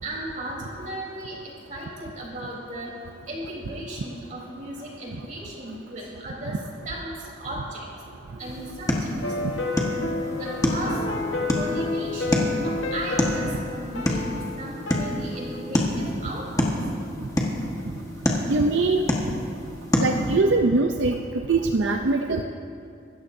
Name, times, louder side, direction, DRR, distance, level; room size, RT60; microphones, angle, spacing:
voice 1, 0.0-2.9 3.3-6.6 6.9-7.9 8.4-9.2 10.3-11.1 11.5-16.8, right 1 dB, 40° right, -4 dB, 3.7 m, -36 dB
sound 1, 8.4-20.4, left 1 dB, 15° left, 1.4 m, -28 dB
sound 2, 9.2-15.8, left 3 dB, 75° left, 1.3 m, -31 dB
voice 2, 18.5-19.0 20.0-21.2 21.5-22.4, right 3 dB, 70° right, 4 dB, 0.5 m, -22 dB
25.0 x 13.5 x 2.7 m, 2.5 s
head